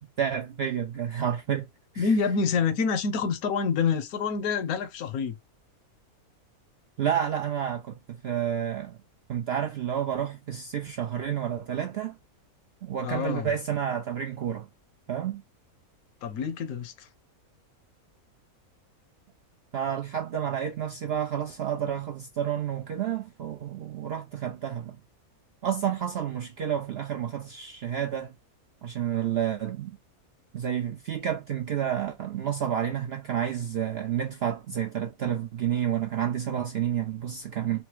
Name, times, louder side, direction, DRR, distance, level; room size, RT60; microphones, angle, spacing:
voice 1, 0.2-1.7 1.9-2.1 7.0-8.0 8.2-9.0 9.3-12.1 12.8-14.7 15.1-15.4 19.7-25.0 25.6-28.3 28.8-30.0 30.5-37.8, right 9 dB, 65° right, 0.6 m, -30 dB
voice 2, 2.0-5.3 13.0-13.5 16.2-17.1, left 5 dB, 70° left, 1.2 m, -27 dB
4.2 x 2.0 x 4.4 m
omnidirectional pair, 1.6 m